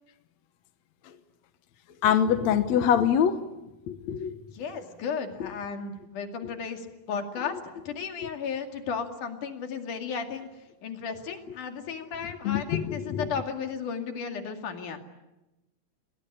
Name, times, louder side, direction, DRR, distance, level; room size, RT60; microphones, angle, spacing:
voice 1, 2.0-3.4 3.9-4.4 5.4-5.5 8.2-8.3 12.4-13.3, left 8 dB, 70° left, 9 dB, 2.3 m, -24 dB
voice 2, 4.5-10.5 10.8-15.0, left 6 dB, 85° left, 5 dB, 3.9 m, -34 dB
28.0 x 21.0 x 10.0 m, 1.0 s
omnidirectional pair, 3.5 m